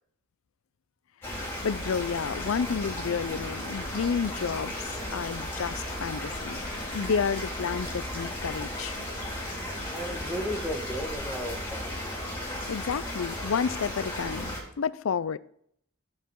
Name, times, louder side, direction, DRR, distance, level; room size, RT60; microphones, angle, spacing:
sound 1, 1.2-14.6, left 1 dB, 10° left, 3.9 m, -35 dB
voice 1, 1.6-6.6 6.9-9.0 12.7-15.4, left 6 dB, 90° left, 0.5 m, -30 dB
voice 2, 9.9-12.0, equal, 5° right, 1.2 m, -34 dB
11.5 x 7.2 x 4.6 m
head